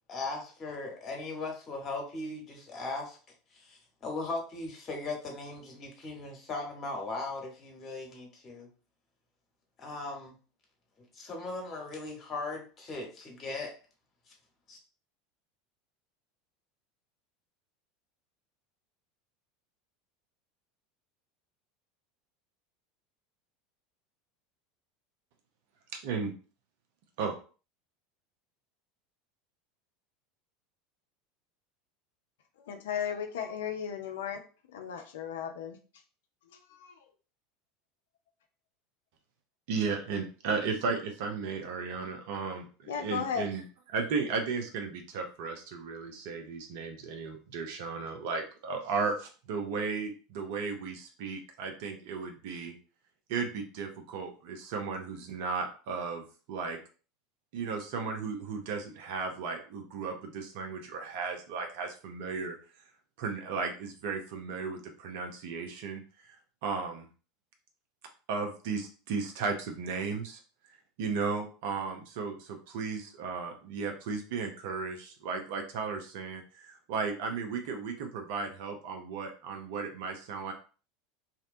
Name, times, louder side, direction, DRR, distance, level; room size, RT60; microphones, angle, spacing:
voice 1, 0.1-3.2 3.5-8.7 9.8-10.4 11.1-13.7 14.7-14.8, left 3 dB, 35° left, 1 dB, 1.0 m, -38 dB
voice 2, 25.9-26.3 27.2-27.4 39.7-43.6 43.9-52.7 53.3-56.2 56.5-56.8 57.5-62.6 63.2-66.0 66.6-67.1 68.3-70.4 71.0-80.5, right 5 dB, 60° right, 4 dB, 0.5 m, -35 dB
voice 3, 32.7-34.4 34.7-35.8 36.8-36.9 42.9-43.5, left 7 dB, 70° left, 5 dB, 0.3 m, -35 dB
2.6 x 2.1 x 2.5 m, 0.37 s
figure-of-eight pair, 75°, 0 cm